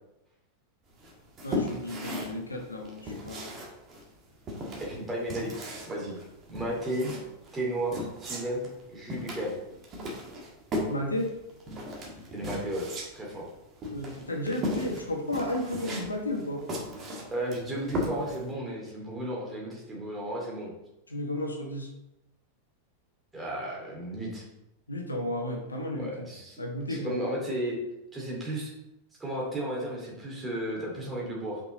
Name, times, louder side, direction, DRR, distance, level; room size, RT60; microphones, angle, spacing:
sound 1, 1.0-18.5, left 1 dB, 30° right, 1.6 m, -37 dB
voice 1, 1.4-3.6 10.9-11.3 13.9-16.6 21.1-21.9 24.9-26.3 26.6-27.1, left 1 dB, 80° left, 2 dB, 1.1 m, -33 dB
voice 2, 4.8-6.2 6.5-7.1 7.5-9.6 12.3-12.9 13.1-13.4 17.3-20.7 23.3-24.4 26.0-26.6 26.9-27.8 28.1-28.7 29.2-31.6, right 1 dB, 15° right, -3 dB, 2.6 m, -34 dB
5.9 x 5.4 x 4.0 m, 0.89 s
figure-of-eight pair, 90°, 0 cm